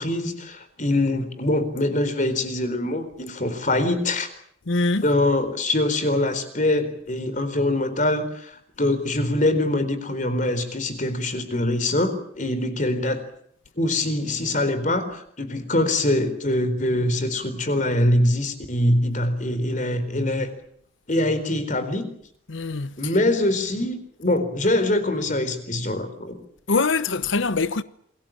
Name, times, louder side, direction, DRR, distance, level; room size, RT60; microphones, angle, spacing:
voice 1, 0.0-4.3 5.0-13.2 13.8-20.5 21.1-22.1 23.0-26.4, left 1 dB, 40° left, 4.2 m, -23 dB
voice 2, 4.7-5.1 22.5-23.1 26.7-27.8, left 3 dB, 75° left, 1.0 m, -23 dB
28.0 x 22.0 x 7.5 m
head